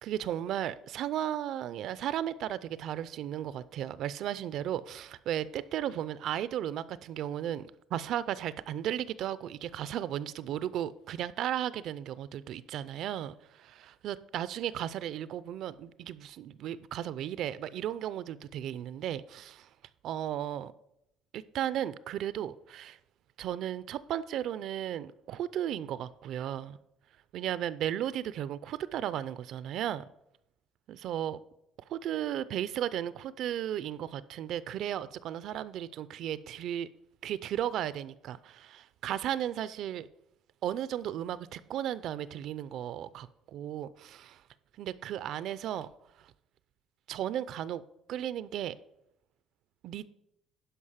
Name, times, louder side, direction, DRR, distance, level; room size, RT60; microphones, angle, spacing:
voice 1, 0.0-19.7 20.0-20.7 21.3-23.0 23.4-26.8 27.3-30.0 30.9-31.4 31.9-36.9 37.2-40.1 40.6-44.4 44.8-45.9 47.1-47.8 48.1-48.8 49.8-50.0, right 11 dB, 60° right, 0.4 m, -35 dB
11.0 x 5.2 x 5.7 m
cardioid pair, 140°, 0 cm